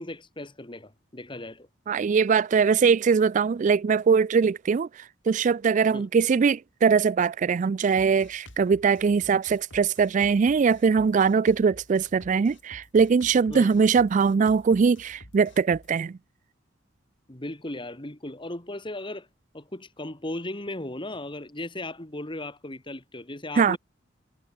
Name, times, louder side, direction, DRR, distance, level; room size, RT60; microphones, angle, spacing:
voice 1, 0.0-1.7 5.9-6.1 13.5-13.8 17.3-19.3 19.5-23.8, left 1 dB, 25° left, 2.2 m, -36 dB
voice 2, 1.9-16.2 23.6-23.8, right 5 dB, 40° right, 0.3 m, -22 dB
Drum kit, 8.0-15.9, left 1 dB, 65° left, 7.7 m, -51 dB
head